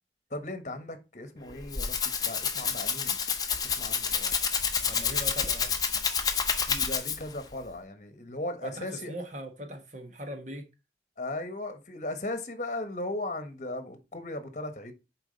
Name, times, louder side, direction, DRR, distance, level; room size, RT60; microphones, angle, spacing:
voice 1, 0.3-3.2 3.6-4.3 6.6-9.1 11.2-14.9, left 2 dB, 40° left, 1.1 m, -37 dB
Rattle (instrument), 1.4-7.4, left 6 dB, 20° left, 0.7 m, -29 dB
voice 2, 4.9-5.7 8.6-10.6, equal, 40° right, 1.3 m, -40 dB
7.1 x 4.6 x 4.0 m
head